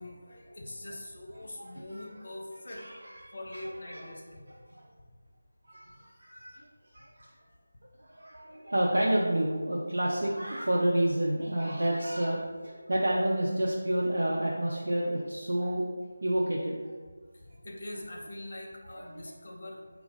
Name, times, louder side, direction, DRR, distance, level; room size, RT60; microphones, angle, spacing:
voice 1, 0.0-2.8 3.3-4.5 5.8-6.6 17.3-19.8, left 1 dB, 55° left, 0 dB, 0.7 m, -43 dB
voice 2, 1.6-2.0 2.7-3.6 3.9-4.0 4.7-4.8 5.7-6.3 6.9-7.3 8.1-15.9 16.2-16.9 19.1-19.3, right 1 dB, 65° right, -4 dB, 0.5 m, -29 dB
3.9 x 2.3 x 3.9 m, 1.5 s
figure-of-eight pair, 160°, 0 cm